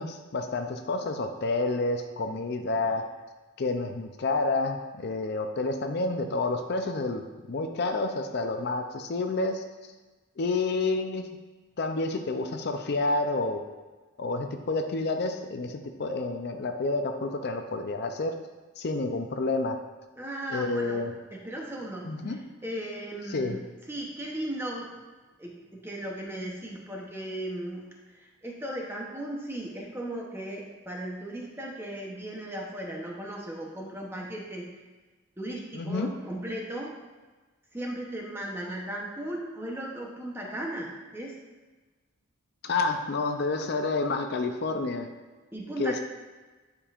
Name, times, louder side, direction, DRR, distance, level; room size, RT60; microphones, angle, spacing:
voice 1, 0.0-3.0 3.6-9.6 10.4-11.3 11.8-13.6 14.2-18.3 18.8-19.8 20.5-21.1 22.1-22.4 23.3-23.6 35.7-36.2 42.6-45.1 45.8-46.0, left 3 dB, 50° left, 5 dB, 0.4 m, -29 dB
voice 2, 20.2-21.0 21.3-24.9 25.4-27.9 28.4-34.7 35.4-36.9 37.7-41.3 45.5-46.0, right 1 dB, 10° right, -1 dB, 0.8 m, -36 dB
9.7 x 5.2 x 2.5 m, 1.3 s
head